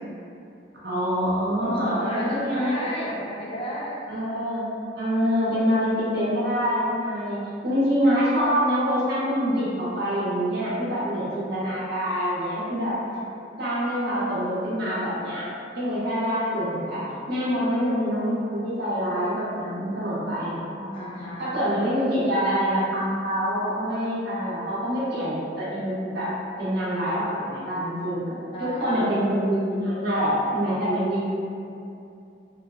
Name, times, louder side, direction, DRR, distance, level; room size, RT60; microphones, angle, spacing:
voice 1, 0.8-2.9 4.1-4.7 5.0-13.0 13.6-15.5 15.7-17.0 17.3-21.0 21.4-26.3 26.6-31.3, equal, 60° right, -9 dB, 0.8 m, -25 dB
voice 2, 1.6-4.0 12.9-13.4 20.9-21.5 28.5-28.9, equal, 30° left, -6 dB, 0.5 m, -33 dB
3.1 x 2.0 x 2.3 m, 2.6 s
head